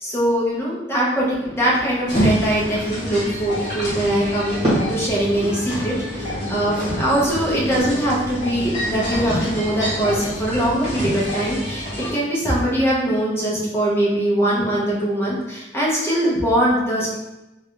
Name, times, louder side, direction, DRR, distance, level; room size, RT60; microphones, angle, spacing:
voice 1, 0.0-17.1, right 1 dB, 15° left, -6 dB, 0.8 m, -22 dB
sound 1, 1.3-6.4, equal, 30° right, 1.4 m, -31 dB
sound 2, 2.1-12.1, equal, 40° left, 1.0 m, -27 dB
3.1 x 2.4 x 2.9 m, 0.98 s
head